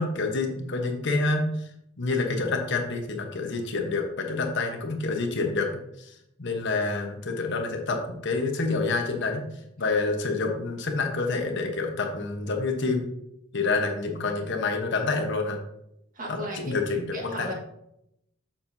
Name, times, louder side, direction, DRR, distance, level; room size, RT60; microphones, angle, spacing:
voice 1, 0.0-1.7 2.0-5.7 6.0-9.5 9.8-13.1 13.5-15.6 16.3-17.5, left 3 dB, 60° left, 3 dB, 1.1 m, -28 dB
voice 2, 16.1-16.8 17.1-17.5, equal, 40° right, 0 dB, 1.7 m, -35 dB
7.3 x 7.3 x 2.8 m, 0.79 s
head